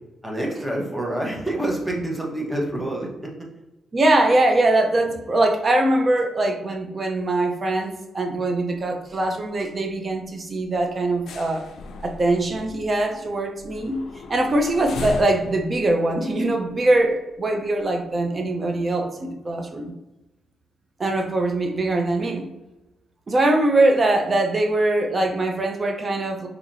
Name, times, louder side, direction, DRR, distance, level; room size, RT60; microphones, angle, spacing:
voice 1, 0.2-3.3, right 1 dB, 5° right, -1 dB, 1.0 m, -27 dB
voice 2, 3.9-11.6 12.0-14.0 14.3-19.9 21.0-22.5 23.3-26.5, right 2 dB, 40° right, 3 dB, 0.6 m, -22 dB
sound 1, 8.8-9.2 9.5-9.7 10.0-10.2 10.6-17.3 17.8-17.9, left 3 dB, 75° left, 0.3 m, -37 dB
3.9 x 2.8 x 2.6 m, 1.0 s
cardioid pair, 70°, 0 cm